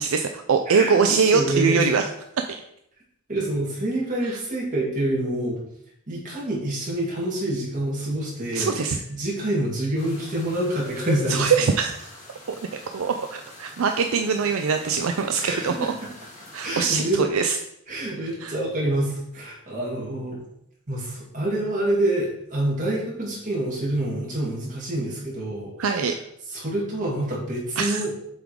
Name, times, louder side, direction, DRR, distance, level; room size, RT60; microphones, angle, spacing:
voice 1, 0.0-2.1 8.5-9.0 11.3-12.1 12.9-15.9 16.5-17.5 18.4-18.5 25.8-26.1 27.8-28.0, right 5 dB, 65° right, 6 dB, 0.4 m, -22 dB
voice 2, 0.7-1.9 3.3-5.6 6.1-11.5 15.4-16.1 16.5-17.4 17.9-20.4 20.9-26.1 26.5-28.1, right 1 dB, 35° right, -4 dB, 2.4 m, -27 dB
sound 1, 10.0-16.8, left 2 dB, 35° left, 1.7 m, -46 dB
7.4 x 3.6 x 4.7 m, 0.75 s
head